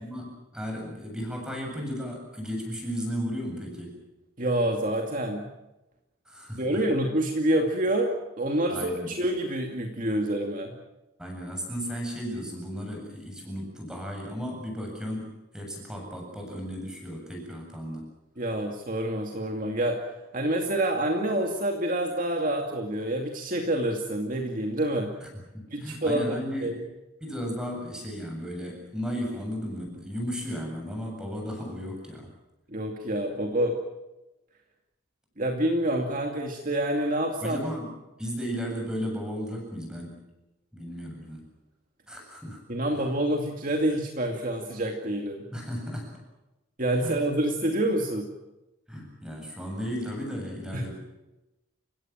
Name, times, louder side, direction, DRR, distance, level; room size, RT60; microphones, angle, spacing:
voice 1, 0.0-4.0 6.3-6.8 8.7-9.1 11.2-18.1 25.2-25.3 25.5-26.8 27.2-32.3 37.4-40.2 40.7-41.4 42.1-42.6 42.9-43.1 45.5-46.2 47.0-47.3 48.9-50.9, equal, 5° right, 1 dB, 7.7 m, -35 dB
voice 2, 4.4-5.5 6.6-8.1 8.4-10.7 18.4-20.0 20.3-25.1 25.7-26.2 26.6-26.8 32.7-33.8 35.4-37.6 42.7-45.4 46.8-48.3 50.7-50.9, right 1 dB, 40° right, 2 dB, 2.4 m, -27 dB
30.0 x 17.0 x 7.5 m, 1.0 s
head